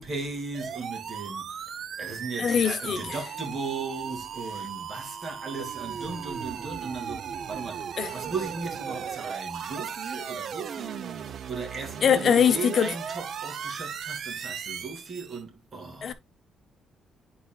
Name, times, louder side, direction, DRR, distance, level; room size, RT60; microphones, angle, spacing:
voice 1, 0.0-16.1, right 4 dB, 35° right, 2.3 m, -37 dB
sound 1, 0.5-15.4, right 7 dB, 60° right, 0.6 m, -37 dB
voice 2, 2.4-3.0 8.0-8.1 12.0-12.9 16.0-16.1, left 7 dB, 55° left, 0.7 m, -22 dB
11.5 x 4.2 x 2.3 m
cardioid pair, 110°, 0 cm